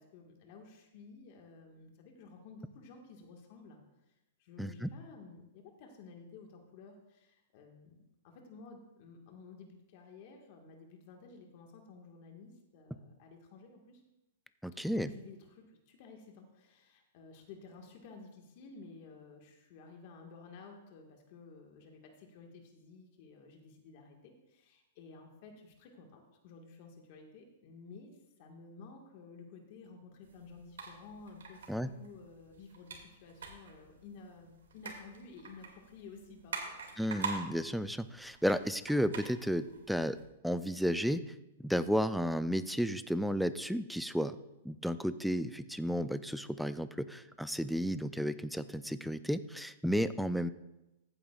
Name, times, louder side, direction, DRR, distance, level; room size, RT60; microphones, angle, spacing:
voice 1, 0.0-3.8 4.4-14.0 14.8-36.8, left 4 dB, 50° left, 1 dB, 1.7 m, -53 dB
voice 2, 4.6-4.9 14.6-15.1 31.7-31.9 37.0-40.2 40.4-41.2 41.6-44.4 44.6-50.5, equal, ahead, 12 dB, 0.4 m, -33 dB
sound 1, 30.2-40.2, right 5 dB, 90° right, 2.3 m, -46 dB
15.0 x 9.1 x 2.4 m, 0.95 s
hypercardioid pair, 140°, 0 cm